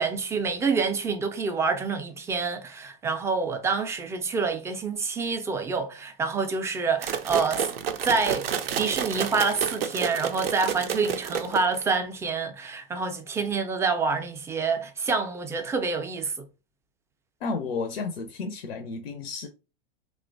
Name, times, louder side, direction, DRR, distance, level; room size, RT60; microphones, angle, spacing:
voice 1, 0.0-7.7 8.0-8.5 8.8-16.4, right 4 dB, 10° right, 0.3 m, -27 dB
sound 1, 7.0-11.9, right 8 dB, 80° right, 0.4 m, -30 dB
voice 2, 17.4-19.5, left 4 dB, 80° left, 0.5 m, -32 dB
2.9 x 2.1 x 2.5 m
hypercardioid pair, 95°, 29 cm